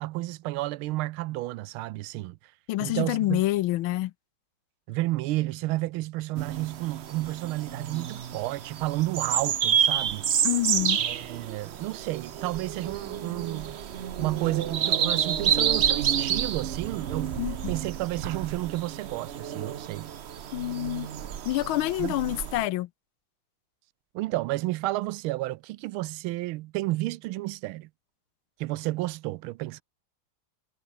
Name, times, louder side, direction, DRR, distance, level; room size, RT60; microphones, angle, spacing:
voice 1, 0.0-2.4 2.8-3.4 4.9-10.3 11.0-13.8 14.2-17.4 17.7-20.1 22.0-22.1 24.1-27.9 28.6-29.8, right 18 dB, 85° right, 1.4 m, -31 dB
voice 2, 2.7-4.1 10.4-11.0 17.4-17.7 20.5-21.1 21.4-22.9, left 16 dB, 80° left, 1.4 m, -27 dB
sound 1, 6.4-22.7, right 9 dB, 70° right, 0.6 m, -29 dB
omnidirectional pair, 2.3 m